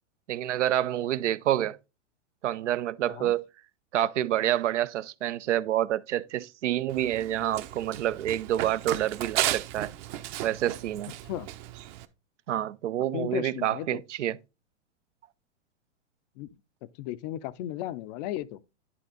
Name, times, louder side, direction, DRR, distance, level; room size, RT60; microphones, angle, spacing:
voice 1, 0.3-1.8 2.4-3.4 3.9-9.9 10.4-11.1 12.5-14.4, right 12 dB, 75° right, 0.7 m, -28 dB
Run, 6.9-12.0, right 14 dB, 40° right, 0.8 m, -34 dB
voice 2, 13.1-14.0 16.4-16.5 16.8-18.6, left 13 dB, 35° left, 0.5 m, -35 dB
10.5 x 4.1 x 3.8 m
hypercardioid pair, 120°, 36 cm